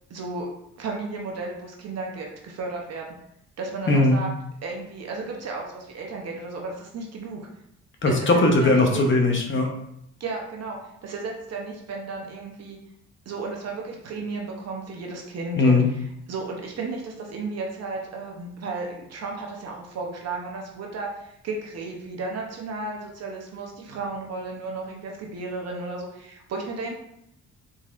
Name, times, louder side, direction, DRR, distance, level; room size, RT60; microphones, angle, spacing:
voice 1, 0.1-0.5 0.8-3.1 3.6-4.3 4.6-7.4 8.1-9.0 10.2-12.8 13.3-26.9, right 3 dB, 55° right, 0 dB, 0.8 m, -34 dB
voice 2, 3.9-4.2 8.0-9.7 15.6-15.9, left 2 dB, 40° left, 1 dB, 0.8 m, -19 dB
4.0 x 4.0 x 2.5 m, 0.77 s
cardioid pair, 90°, 30 cm